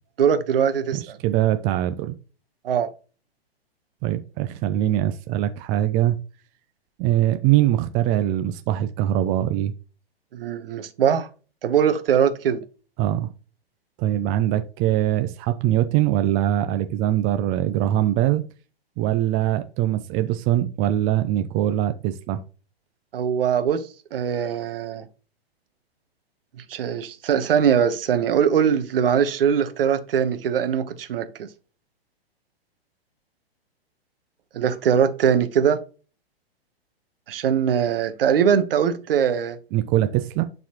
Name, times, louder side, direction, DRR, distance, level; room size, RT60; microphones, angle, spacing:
voice 1, 0.2-1.2 2.6-2.9 10.3-11.3 11.6-12.6 23.1-25.0 26.7-31.3 34.5-35.8 37.3-39.6, right 8 dB, 60° right, 1.2 m, -21 dB
voice 2, 0.9-2.1 4.0-6.2 7.0-9.7 13.0-13.3 14.0-18.4 19.0-22.4 39.7-40.4, right 13 dB, 25° right, 0.5 m, -22 dB
11.0 x 4.0 x 3.0 m
hypercardioid pair, 115°, 31 cm